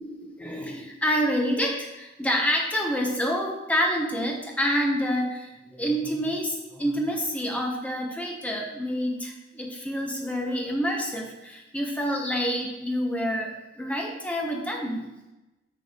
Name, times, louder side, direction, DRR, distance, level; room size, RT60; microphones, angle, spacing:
voice 1, 0.0-15.1, equal, 5° left, 0 dB, 1.2 m, -28 dB
6.7 x 6.6 x 5.3 m, 1.0 s
head